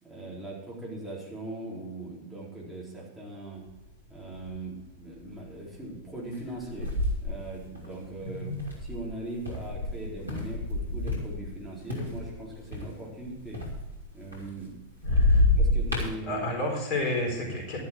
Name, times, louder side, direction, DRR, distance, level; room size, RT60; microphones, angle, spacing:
voice 1, 0.0-3.6 4.1-6.9 7.2-8.5 8.8-13.6 14.1-14.8 15.5-16.5, right 2 dB, 5° right, -6 dB, 4.4 m, -40 dB
sound 1, 3.7-3.8 4.2-4.7 5.2-5.4 6.3-11.6 11.9-14.7 15.0-16.1, left 2 dB, 80° right, 3.4 m, -28 dB
voice 2, 8.2-8.6 15.0-15.5 16.3-17.8, left 1 dB, 40° left, 0 dB, 4.4 m, -31 dB
12.5 x 11.5 x 4.7 m, 0.97 s
figure-of-eight pair, 90°, 0 cm